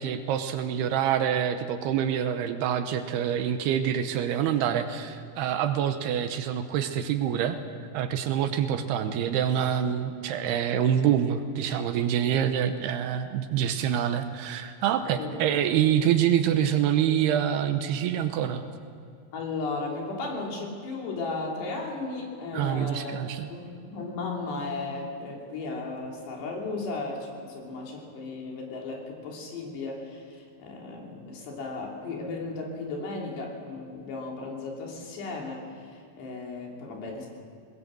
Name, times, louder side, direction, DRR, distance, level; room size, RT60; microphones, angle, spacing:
voice 1, 0.0-7.6 7.9-18.6 22.5-23.5, right 9 dB, 80° right, 8 dB, 2.9 m, -26 dB
voice 2, 19.3-23.2 23.5-37.3, left 3 dB, 85° left, -1 dB, 5.3 m, -35 dB
21.0 x 19.5 x 7.6 m, 2.5 s
omnidirectional pair, 4.7 m